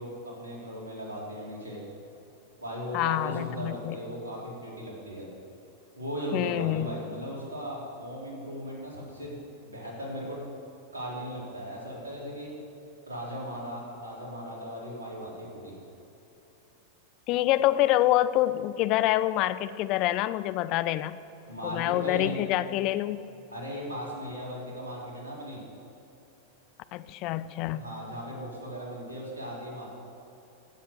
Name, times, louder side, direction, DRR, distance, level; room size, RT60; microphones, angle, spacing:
voice 1, 0.0-1.8 2.6-5.3 6.0-9.4 9.6-10.4 10.9-12.5 13.0-15.7 21.5-22.4 23.5-25.6 27.6-29.9, equal, 75° right, -4 dB, 3.5 m, -37 dB
voice 2, 2.9-4.0 6.3-6.9 17.3-21.2 21.6-23.2 26.9-27.8, left 14 dB, 40° left, 15 dB, 0.4 m, -26 dB
15.5 x 7.5 x 6.6 m, 3.0 s
figure-of-eight pair, 90°, 0 cm